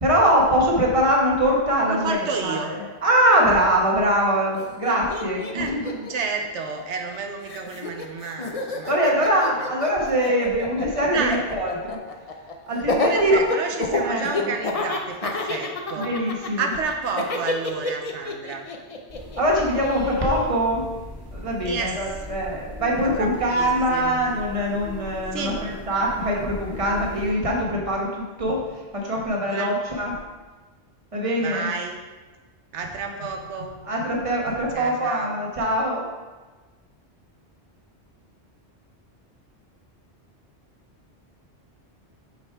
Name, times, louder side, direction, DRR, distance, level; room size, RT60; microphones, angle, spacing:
voice 1, 0.0-5.9 8.9-12.0 12.7-13.3 14.0-14.5 16.0-16.6 19.4-20.8 21.3-30.1 31.1-31.7 33.9-36.0, equal, 30° right, -2 dB, 1.3 m, -23 dB
voice 2, 1.9-2.7 5.5-5.7 6.1-9.7 11.1-11.4 13.1-16.2 16.6-18.7 21.6-22.0 23.2-24.2 25.3-25.6 29.5-29.7 31.4-32.0 32.7-33.7 34.7-35.4, right 5 dB, 85° right, 4 dB, 1.0 m, -30 dB
Laughter, 4.5-4.6 4.8-7.2 7.5-20.5, left 3 dB, 40° left, 0.6 m, -28 dB
sound 1, 19.1-27.3, equal, 70° left, 2.3 m, -39 dB
sound 2, 27.7-28.2 28.5-29.5 32.8-35.1, equal, 55° right, 1.5 m, -44 dB
6.0 x 5.3 x 4.7 m, 1.3 s
omnidirectional pair, 1.2 m